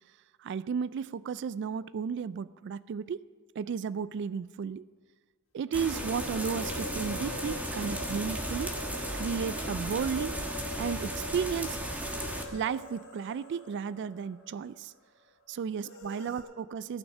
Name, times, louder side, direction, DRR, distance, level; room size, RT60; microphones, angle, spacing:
voice 1, 0.4-3.2 3.6-4.8 5.5-8.8 9.1-10.4 10.8-11.8 12.5-14.9 15.5-17.0, right 6 dB, 60° right, 17 dB, 0.3 m, -34 dB
sound 1, 5.7-12.4, equal, 10° right, 1.4 m, -35 dB
sound 2, 5.9-14.8 15.0-15.1 15.8-16.4, left 1 dB, 85° left, 2.5 m, -43 dB
15.0 x 6.4 x 7.2 m, 1.5 s
head